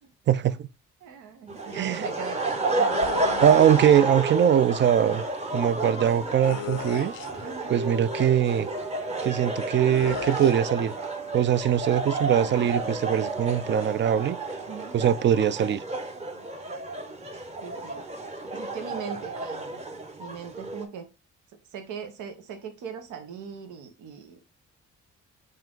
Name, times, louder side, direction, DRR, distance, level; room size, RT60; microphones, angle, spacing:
voice 1, 0.3-0.6 1.7-2.1 3.4-5.2 5.5-7.1 7.7-8.7 9.2-10.9 11.3-14.4 14.9-15.8, right 9 dB, 40° right, 0.4 m, -22 dB
voice 2, 1.0-2.9 7.4-7.8 14.7-14.9 17.6-18.0 18.5-19.8 20.2-21.1 21.7-24.5, right 7 dB, 80° right, 0.9 m, -39 dB
sound 1, 1.5-20.8, right 2 dB, 20° right, 0.9 m, -31 dB
sound 2, 2.9-4.0 6.4-7.5 9.9-10.6, left 10 dB, 85° left, 0.6 m, -36 dB
sound 3, 5.4-17.1, right 3 dB, 65° right, 2.1 m, -41 dB
5.7 x 2.5 x 3.7 m
cardioid pair, 90°, 30 cm